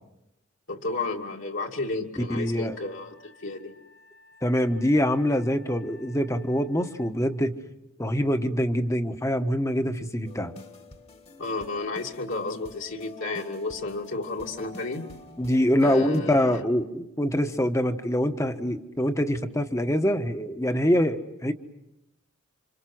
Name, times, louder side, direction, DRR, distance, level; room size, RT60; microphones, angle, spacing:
voice 1, 0.7-3.7 11.4-15.2 15.8-16.6, left 3 dB, 60° left, 0 dB, 2.7 m, -32 dB
Wind instrument woodwind instrument, 2.3-7.2, left 3 dB, 75° left, 6.0 m, -55 dB
voice 2, 2.4-2.8 4.4-7.6 8.0-10.5 15.4-21.5, equal, 15° left, 7 dB, 1.3 m, -24 dB
sound 1, 10.2-16.2, left 3 dB, 30° left, 1.8 m, -47 dB
29.5 x 27.0 x 6.2 m, 0.90 s
head